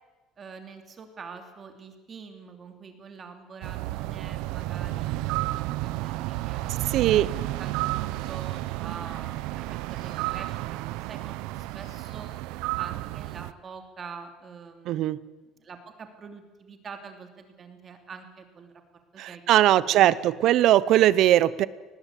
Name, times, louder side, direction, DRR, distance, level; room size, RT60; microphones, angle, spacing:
voice 1, 0.4-10.8 11.1-12.3 12.8-18.7 19.1-20.4, right 5 dB, 25° right, 6 dB, 2.8 m, -45 dB
sound 1, 3.6-13.5, right 17 dB, 85° right, 0.7 m, -32 dB
voice 2, 6.9-7.3 14.9-15.2 19.2-21.7, right 13 dB, 55° right, 18 dB, 0.8 m, -20 dB
sound 2, 8.0-8.8 9.9-10.6 11.7-12.5, left 4 dB, 45° left, 7.3 m, -59 dB
24.0 x 19.5 x 8.4 m, 1.2 s
cardioid pair, 170°, 0 cm